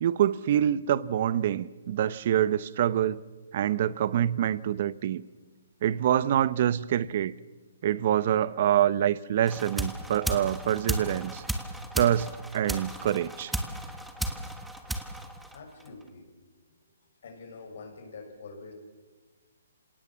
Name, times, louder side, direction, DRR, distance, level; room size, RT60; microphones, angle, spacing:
voice 1, 0.0-3.2 3.5-5.2 5.8-7.3 7.8-11.4 11.9-13.5, right 11 dB, 45° right, 18 dB, 0.8 m, -26 dB
sound 1, 9.5-16.0, right 1 dB, ahead, 1.4 m, -35 dB
voice 2, 15.5-16.3 17.2-18.7, left 4 dB, 60° left, 4 dB, 6.6 m, -46 dB
26.5 x 18.0 x 7.4 m, 1.3 s
hypercardioid pair, 155°, 0 cm